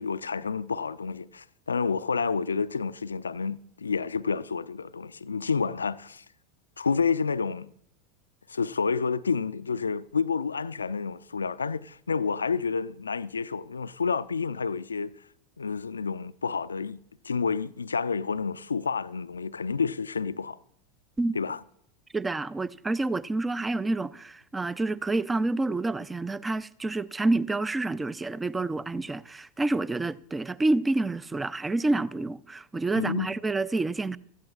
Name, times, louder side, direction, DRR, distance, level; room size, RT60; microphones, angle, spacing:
voice 1, 0.0-6.2 6.8-7.7 8.5-15.1 15.6-17.0 17.2-20.6 21.3-21.6 32.9-33.3, left 5 dB, 85° left, 0.4 m, -29 dB
voice 2, 22.1-34.2, right 2 dB, 15° right, 0.5 m, -28 dB
16.0 x 13.5 x 2.4 m
figure-of-eight pair, 85°, 0 cm